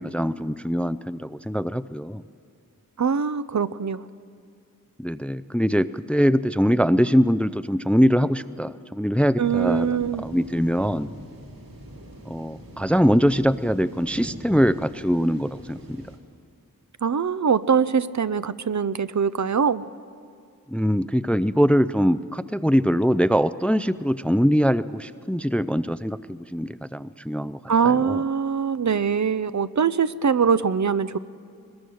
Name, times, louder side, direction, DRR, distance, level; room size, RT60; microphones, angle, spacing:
voice 1, 0.0-2.2 5.0-11.1 12.3-16.0 20.7-27.6 27.8-28.2, equal, 5° left, 14 dB, 0.4 m, -22 dB
voice 2, 3.0-4.0 9.4-10.2 17.0-19.8 27.7-31.2, right 6 dB, 55° right, 14 dB, 0.6 m, -22 dB
sound 1, 9.4-16.2, right 1 dB, 75° right, 3.1 m, -42 dB
21.5 x 21.0 x 6.4 m, 2.3 s
wide cardioid pair, 60°, 35 cm